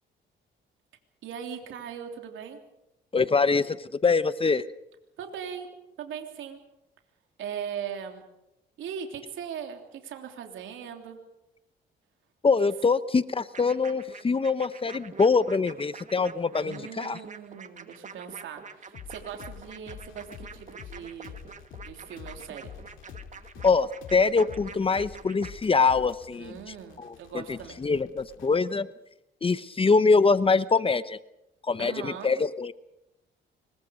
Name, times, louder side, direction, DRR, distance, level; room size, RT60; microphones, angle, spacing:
voice 1, 1.2-2.6 5.2-5.7 6.0-6.6 7.4-8.2 8.8-11.2 16.5-21.4 21.8-22.7 26.4-27.8 31.8-32.3, right 8 dB, 80° right, 4 dB, 3.2 m, -39 dB
voice 2, 3.1-4.7 12.4-17.2 23.6-28.9 29.4-31.2 31.7-32.7, left 4 dB, 25° left, 14 dB, 0.9 m, -24 dB
sound 1, 13.5-25.5, right 5 dB, 40° right, 1.8 m, -46 dB
sound 2, 18.9-28.6, left 8 dB, 75° left, 2.6 m, -47 dB
25.5 x 22.5 x 5.3 m, 0.87 s
cardioid pair, 90°, 20 cm